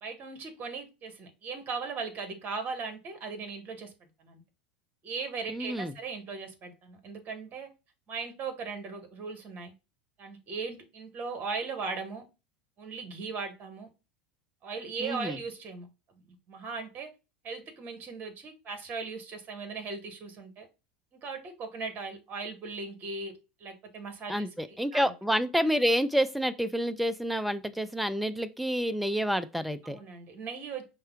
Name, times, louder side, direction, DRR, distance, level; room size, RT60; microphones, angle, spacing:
voice 1, 0.0-3.9 4.2-4.4 5.0-7.7 8.1-9.7 10.2-12.2 12.8-13.9 14.6-15.9 16.5-17.1 17.4-20.7 21.1-25.1 29.8-30.9, right 4 dB, 35° right, 1.3 m, -38 dB
voice 2, 5.5-5.9 15.0-15.4 24.3-30.0, equal, ahead, 0.4 m, -28 dB
5.4 x 2.2 x 3.5 m
hypercardioid pair, 80°, 5 cm